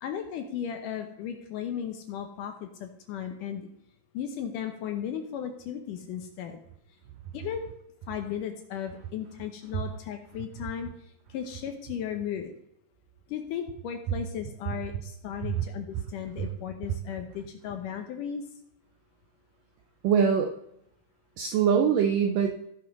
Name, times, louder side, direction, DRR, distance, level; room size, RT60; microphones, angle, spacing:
voice 1, 0.0-3.7 4.1-6.6 7.3-7.7 8.1-10.9 11.3-12.5 13.3-18.4, left 8 dB, 75° left, 6 dB, 2.0 m, -35 dB
voice 2, 20.0-20.5 21.4-22.5, right 7 dB, 75° right, 4 dB, 2.1 m, -23 dB
15.5 x 5.5 x 5.3 m, 0.75 s
omnidirectional pair, 4.6 m